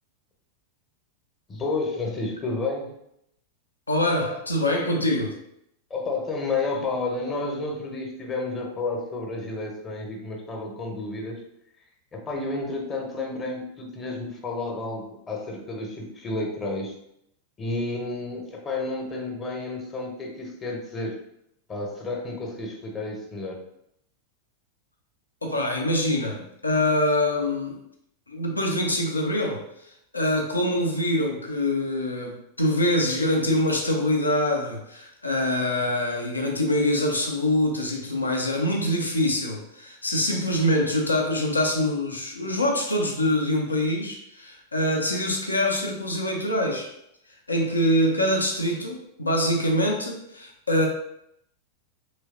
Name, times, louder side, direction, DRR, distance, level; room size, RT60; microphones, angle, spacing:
voice 1, 1.5-3.0 5.9-11.4 12.1-16.9 17.6-21.2 21.7-23.6, left 3 dB, 25° left, 0 dB, 0.8 m, -31 dB
voice 2, 3.9-5.4 25.4-27.8 28.3-46.9 47.5-50.9, left 1 dB, 80° left, 1 dB, 0.5 m, -24 dB
3.1 x 3.1 x 2.4 m, 0.76 s
figure-of-eight pair, 90°, 0 cm